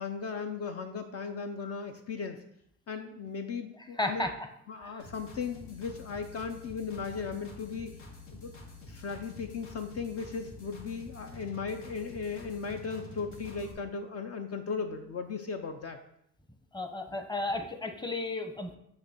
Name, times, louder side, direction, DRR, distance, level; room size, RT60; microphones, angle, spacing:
voice 1, 0.0-2.4 2.9-4.3 4.7-7.9 8.3-8.5 8.9-16.0, left 5 dB, 50° left, 5 dB, 0.8 m, -37 dB
voice 2, 4.0-4.3 4.8-4.9 16.7-18.8, left 2 dB, 15° left, 6 dB, 1.0 m, -33 dB
sound 1, 5.0-13.7, left 2 dB, 80° left, 1.7 m, -48 dB
8.9 x 3.2 x 6.1 m, 0.74 s
cardioid pair, 90°, 30 cm